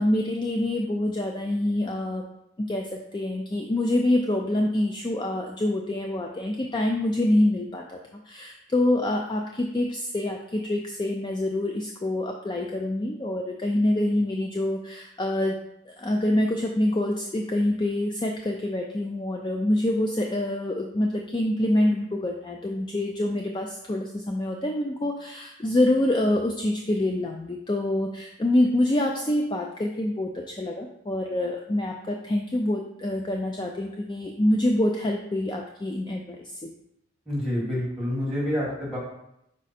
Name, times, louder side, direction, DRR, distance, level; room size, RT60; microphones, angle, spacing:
voice 1, 0.0-2.2 2.6-15.6 15.9-36.7, left 1 dB, 20° left, 2 dB, 0.3 m, -26 dB
voice 2, 37.3-39.0, left 1 dB, ahead, -6 dB, 1.8 m, -28 dB
5.0 x 4.9 x 4.2 m, 0.81 s
head